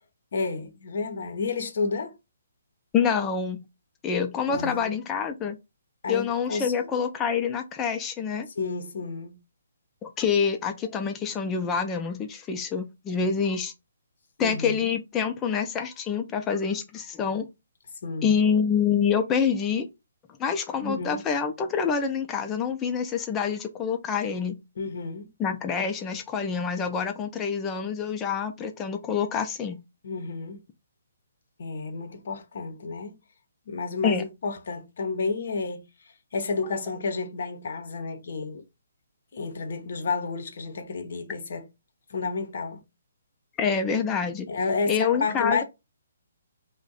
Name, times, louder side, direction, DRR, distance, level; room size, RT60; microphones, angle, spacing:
voice 1, 0.3-2.1 4.5-5.0 6.0-6.9 8.6-9.3 14.4-14.9 18.0-18.3 20.8-21.2 24.8-25.3 30.0-30.6 31.6-33.1 33.7-35.8 36.3-38.6 39.3-41.6 42.1-42.8 44.5-45.6, left 4 dB, 60° left, 0.7 m, -31 dB
voice 2, 2.9-3.6 4.0-5.6 6.1-8.5 10.0-13.7 14.4-17.5 18.2-19.9 20.4-24.6 25.4-29.8 34.0-34.3 36.6-36.8 43.6-44.5 44.9-45.6, left 6 dB, 15° left, 0.5 m, -26 dB
2.6 x 2.2 x 3.9 m
hypercardioid pair, 150°, 0 cm